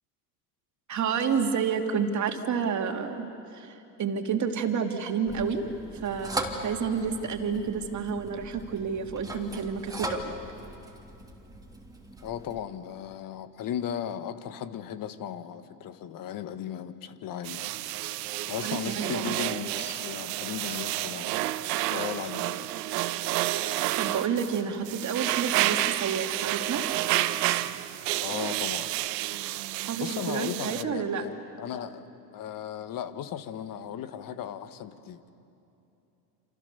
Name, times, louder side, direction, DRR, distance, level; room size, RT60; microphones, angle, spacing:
voice 1, 0.9-5.7 6.0-10.4 18.6-19.3 24.0-26.8 29.8-31.2, right 6 dB, 35° right, 4 dB, 3.0 m, -30 dB
sound 1, 5.3-12.6, right 1 dB, 5° right, 3.0 m, -39 dB
voice 2, 12.2-17.7 18.5-21.5 21.9-22.7 28.2-28.9 30.0-35.3, left 9 dB, 40° left, 11 dB, 1.7 m, -36 dB
sound 2, 17.4-30.8, right 16 dB, 70° right, 1.1 m, -30 dB
28.5 x 28.0 x 7.0 m, 2.9 s
hypercardioid pair, 95°, 50 cm